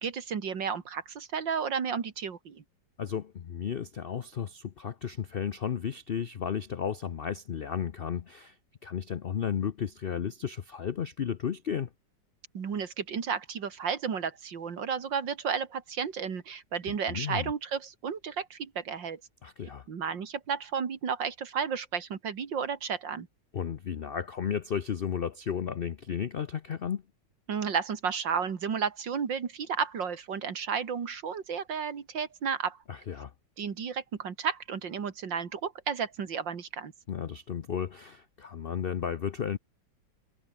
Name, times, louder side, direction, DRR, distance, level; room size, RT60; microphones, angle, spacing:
voice 1, 0.0-2.6 12.5-19.2 19.9-23.3 27.5-32.8 33.6-36.9, right 6 dB, 80° right, 2.7 m, -32 dB
voice 2, 3.0-8.5 8.8-11.9 16.9-17.5 19.4-19.8 23.5-27.0 32.9-33.3 37.1-39.6, left 8 dB, 90° left, 0.5 m, -33 dB
omnidirectional pair, 2.0 m